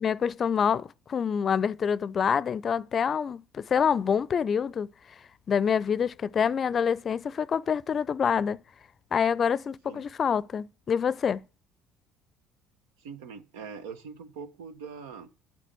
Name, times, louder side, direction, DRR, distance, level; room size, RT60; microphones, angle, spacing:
voice 1, 0.0-4.9 5.5-8.6 9.1-11.4, left 7 dB, 40° left, 0.5 m, -26 dB
voice 2, 13.0-15.3, right 6 dB, 80° right, 1.2 m, -42 dB
10.5 x 7.5 x 8.2 m
hypercardioid pair, 60°, 0 cm